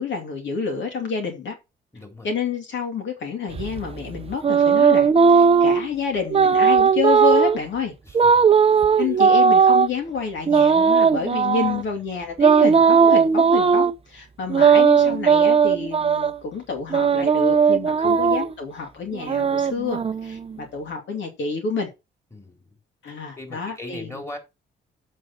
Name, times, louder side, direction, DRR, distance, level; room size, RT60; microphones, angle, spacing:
voice 1, 0.0-1.5 2.2-7.9 9.0-21.9 23.0-24.2, left 5 dB, 70° left, 2.5 m, -28 dB
voice 2, 1.9-2.3 8.0-8.5 8.9-9.0 11.6-11.8 18.0-18.3 22.3-22.8 23.1-24.4, left 2 dB, 15° left, 3.5 m, -40 dB
sound 1, 3.5-5.9 6.3-7.6 8.1-9.9 10.5-11.8 12.4-13.9 14.5-16.3 16.9-18.5 19.1-20.5, right 6 dB, 30° right, 0.6 m, -17 dB
7.7 x 6.6 x 4.2 m
cardioid pair, 90°, 20 cm